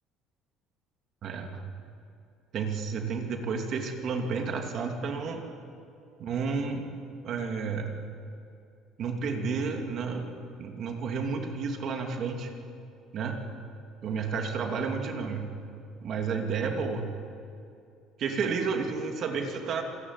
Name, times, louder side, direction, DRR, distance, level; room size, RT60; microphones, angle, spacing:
voice 1, 1.2-1.6 2.5-5.4 6.2-6.8 7.2-7.9 9.0-10.3 10.6-12.5 13.1-13.4 14.0-15.5 16.0-17.1 18.2-19.8, right 5 dB, 40° right, 4 dB, 2.7 m, -31 dB
26.5 x 21.5 x 9.8 m, 2.6 s
cardioid pair, 175°, 0 cm